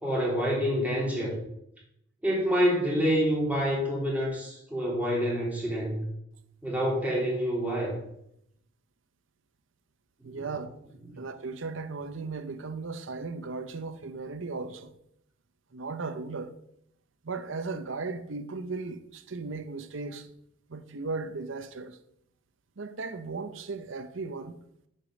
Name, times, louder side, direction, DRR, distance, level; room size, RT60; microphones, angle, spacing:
voice 1, 0.0-1.4 2.2-6.0 6.6-8.0 10.2-10.4, equal, 10° right, 2.8 m, -27 dB
voice 2, 10.2-10.8 11.1-15.0 15.7-16.5 17.2-20.3 20.7-22.0 22.8-24.6, right 4 dB, 70° right, 0.8 m, -36 dB
7.3 x 5.0 x 6.3 m
head